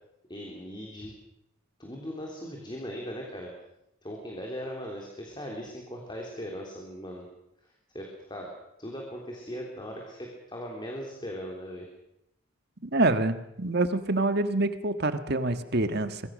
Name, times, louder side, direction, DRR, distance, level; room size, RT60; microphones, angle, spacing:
voice 1, 0.3-1.1 1.8-3.5 4.0-7.3 7.6-8.5 8.8-11.9, equal, 20° left, 0 dB, 3.5 m, -39 dB
voice 2, 12.8-16.2, right 2 dB, 50° right, 9 dB, 1.5 m, -26 dB
25.5 x 21.5 x 6.5 m, 0.83 s
head